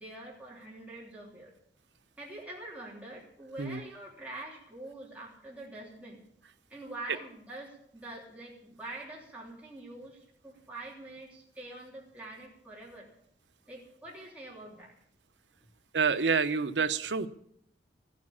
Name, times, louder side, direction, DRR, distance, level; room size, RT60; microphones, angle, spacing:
voice 1, 0.0-1.5 2.2-6.2 6.7-13.1 13.7-14.9, right 2 dB, 10° right, -5 dB, 3.2 m, -45 dB
voice 2, 15.9-17.3, right 5 dB, 90° right, 11 dB, 0.8 m, -27 dB
15.0 x 9.3 x 8.7 m, 0.69 s
head